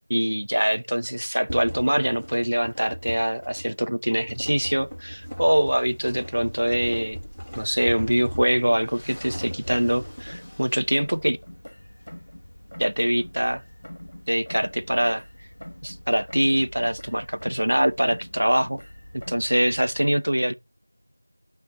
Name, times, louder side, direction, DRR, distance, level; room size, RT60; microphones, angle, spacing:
voice 1, 0.1-7.2 7.6-11.4 12.8-13.6 14.3-15.2 15.8-18.8 19.3-20.5, equal, 70° right, 0.7 m, -23 dB
sound 1, 1.5-10.4, equal, 5° right, 2.0 m, -38 dB
sound 2, 4.3-20.0, equal, 35° left, 1.1 m, -48 dB
sound 3, 9.2-10.7 11.0-12.5 12.7-16.0 16.3-17.8 18.1-19.6, left 1 dB, 65° left, 1.3 m, -44 dB
12.5 x 4.4 x 2.7 m
figure-of-eight pair, 180°, 0 cm